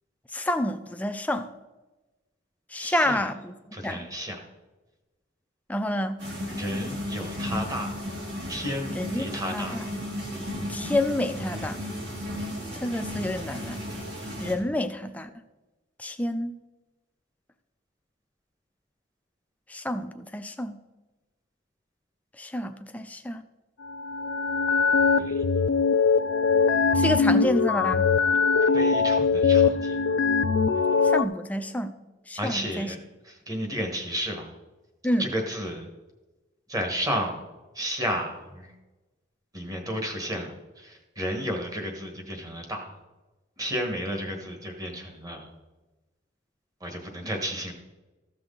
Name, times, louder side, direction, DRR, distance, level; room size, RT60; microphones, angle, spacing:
voice 1, 0.3-1.5 2.7-3.6 3.8-4.1 5.7-6.2 9.0-9.2 9.5-9.8 10.7-11.8 12.8-13.8 14.4-15.3 16.0-16.5 19.7-20.8 22.4-23.4 26.9-28.1 31.0-32.0 32.3-32.9 35.0-35.3, left 1 dB, 5° left, 8 dB, 0.4 m, -28 dB
voice 2, 2.8-3.3 3.7-4.4 6.5-8.0 8.5-9.8 25.2-25.4 28.7-30.0 32.4-33.0 33.2-34.5 35.2-35.9 36.7-37.4 37.7-38.7 39.5-42.9 43.6-45.5 46.8-47.7, equal, 20° right, 3 dB, 1.3 m, -32 dB
sound 1, 6.2-14.5, left 1 dB, 60° right, 2.3 m, -34 dB
sound 2, 23.8-31.2, left 5 dB, 75° left, 0.4 m, -22 dB
14.5 x 6.1 x 3.8 m, 1.1 s
head